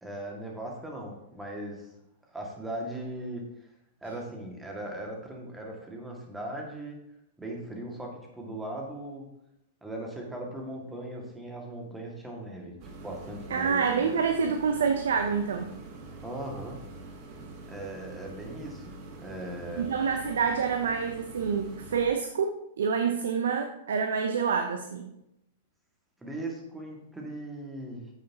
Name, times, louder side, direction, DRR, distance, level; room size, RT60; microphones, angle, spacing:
voice 1, 0.0-1.9 2.3-3.7 4.0-7.0 7.4-9.3 9.8-12.8 13.0-14.1 16.2-16.8 17.7-19.9 26.2-28.1, right 1 dB, 5° right, 0 dB, 1.9 m, -39 dB
sound 1, 12.8-22.1, right 3 dB, 40° right, 1.3 m, -45 dB
voice 2, 13.5-15.7 19.8-25.1, right 6 dB, 65° right, 5 dB, 0.7 m, -27 dB
9.4 x 7.7 x 2.8 m, 0.84 s
figure-of-eight pair, 100°, 0 cm